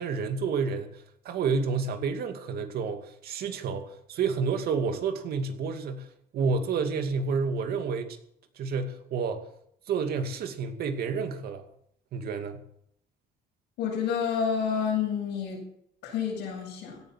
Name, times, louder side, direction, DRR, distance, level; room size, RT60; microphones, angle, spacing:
voice 1, 0.0-6.1 6.3-8.2 8.6-9.4 9.9-11.6 12.1-12.6, right 5 dB, 65° right, 6 dB, 2.5 m, -30 dB
voice 2, 13.8-15.6 16.0-17.0, left 7 dB, 85° left, -5 dB, 7.6 m, -29 dB
17.0 x 11.0 x 7.4 m, 0.70 s
cardioid pair, 110°, 17 cm